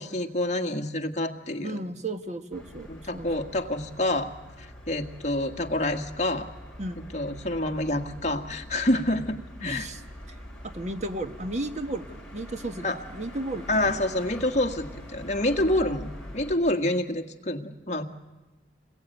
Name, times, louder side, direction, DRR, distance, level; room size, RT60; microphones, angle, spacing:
voice 1, 0.0-1.8 2.9-6.5 7.0-9.9 12.8-13.0 13.7-18.0, left 1 dB, 40° left, 5 dB, 1.8 m, -28 dB
voice 2, 1.6-3.3 6.8-7.0 9.6-10.0 10.6-13.9, right 2 dB, 40° right, 8 dB, 1.4 m, -34 dB
sound 1, 2.5-16.5, equal, 5° left, 6.6 m, -44 dB
27.5 x 21.5 x 9.2 m, 1.1 s
head